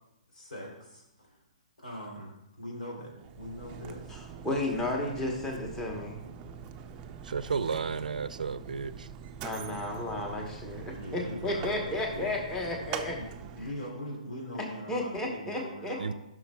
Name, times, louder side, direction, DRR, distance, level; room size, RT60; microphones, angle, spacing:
voice 1, 0.3-1.4 1.8-4.2 9.7-9.8 10.9-12.3 13.2-13.3 13.5-16.1, equal, 85° left, -1 dB, 3.1 m, -41 dB
Mechanisms, 3.1-13.9, right 7 dB, 25° right, 0.4 m, -44 dB
voice 2, 4.1-6.2 9.4-13.2 14.9-16.0, left 1 dB, 10° left, 1 dB, 1.1 m, -33 dB
voice 3, 7.3-8.9 16.0-16.1, right 5 dB, 85° right, 14 dB, 0.4 m, -32 dB
14.0 x 6.1 x 2.3 m, 0.85 s
hypercardioid pair, 145°, 4 cm